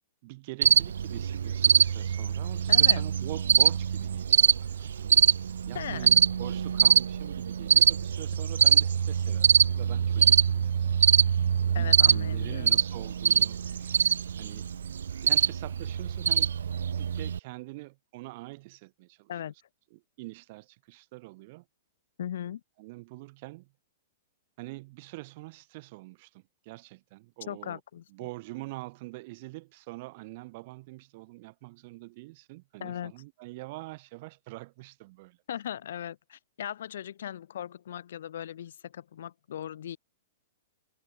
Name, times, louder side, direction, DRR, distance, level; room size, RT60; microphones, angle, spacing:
voice 1, 0.2-5.2 5.7-10.9 11.2-11.4 11.8-14.1 14.4-14.7 15.2-19.3 19.9-21.6 22.8-23.7 24.6-27.8 28.1-35.4, right 22 dB, 50° right, 4.2 m, -44 dB
Cricket, 0.6-17.4, right 8 dB, 75° right, 0.4 m, -24 dB
voice 2, 2.7-3.0 5.7-6.1 11.7-12.8 19.3-19.5 22.2-22.6 27.5-28.0 32.8-33.1 35.5-40.0, left 10 dB, 70° left, 0.6 m, -38 dB
hypercardioid pair, 115°, 0 cm